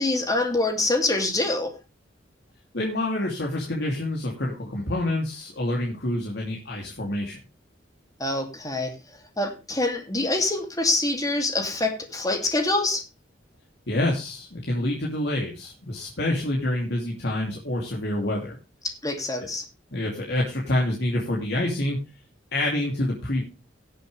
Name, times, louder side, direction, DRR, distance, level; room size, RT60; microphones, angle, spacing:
voice 1, 0.0-1.7 8.2-8.9 9.4-13.0 19.0-19.6, left 2 dB, 20° left, 4 dB, 2.5 m, -25 dB
voice 2, 2.7-7.4 13.9-18.6 19.9-22.0 22.5-23.4, left 1 dB, 65° left, -1 dB, 2.8 m, -27 dB
17.5 x 7.7 x 3.3 m, 0.29 s
head